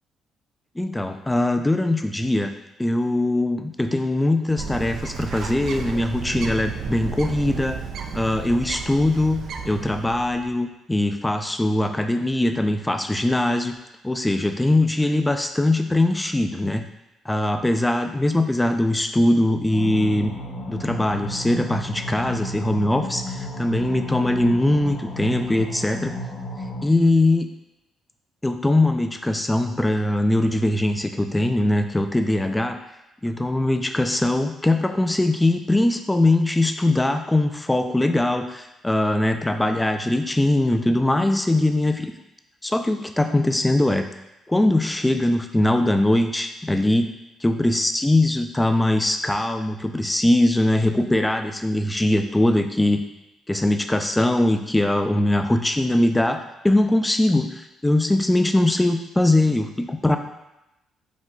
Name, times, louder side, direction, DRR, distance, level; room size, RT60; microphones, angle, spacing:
voice 1, 0.8-2.5 2.8-7.8 8.1-13.7 14.0-16.8 17.3-20.3 20.7-26.1 26.8-27.5 28.4-32.8 33.2-42.1 42.6-44.0 44.5-47.1 47.4-53.0 53.5-60.2, left 1 dB, 10° left, 7 dB, 0.4 m, -21 dB
Bird, 4.6-10.5, right 5 dB, 70° right, 0.4 m, -33 dB
sound 1, 19.7-26.9, equal, 50° left, 0.8 m, -33 dB
5.2 x 2.3 x 3.7 m, 0.92 s
cardioid pair, 90°, 0 cm